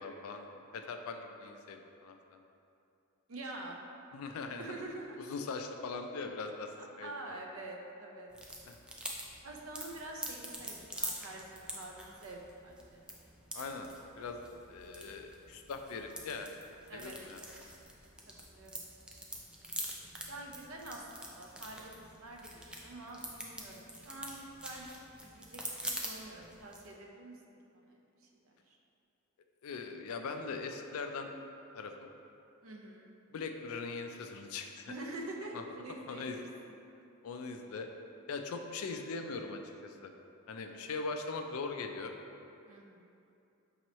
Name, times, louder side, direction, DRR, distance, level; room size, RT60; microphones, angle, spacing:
voice 1, 0.0-2.4 4.1-4.8 5.2-7.4 8.7-8.8 13.5-13.9 14.2-14.4 14.7-16.5 16.9-17.4 29.6-31.3 31.7-32.1 33.3-34.9 35.5-35.6 36.1-36.4 37.2-37.9 38.3-40.1 40.5-42.1, left 4 dB, 80° left, 5 dB, 0.4 m, -41 dB
voice 2, 3.3-3.8 4.6-5.2 7.0-8.3 9.4-13.1 16.9-17.2 18.5-18.9 20.3-24.9 25.2-27.4 27.7-28.8 32.6-33.1 34.9-36.4 40.7-40.9 42.7-43.1, right 2 dB, 70° right, 0 dB, 0.6 m, -46 dB
sound 1, 8.3-26.9, right 1 dB, 5° right, 0.3 m, -45 dB
5.3 x 2.9 x 3.0 m, 2.7 s
head